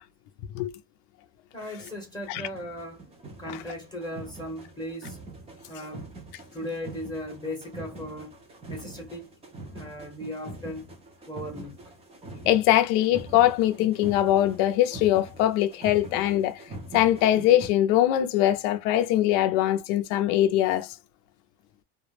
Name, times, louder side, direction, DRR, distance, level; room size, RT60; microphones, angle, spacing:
voice 1, 1.5-3.0 3.4-5.2 5.7-6.1 6.5-8.4 8.7-9.3 9.7-10.9 11.3-11.8, left 1 dB, 10° left, 0.8 m, -37 dB
sound 1, 1.9-2.0 2.2-17.7, right 2 dB, 15° right, 0.4 m, -44 dB
voice 2, 12.5-16.6 16.9-20.9, left 13 dB, 70° left, 0.6 m, -22 dB
2.3 x 2.0 x 3.0 m
cardioid pair, 145°, 47 cm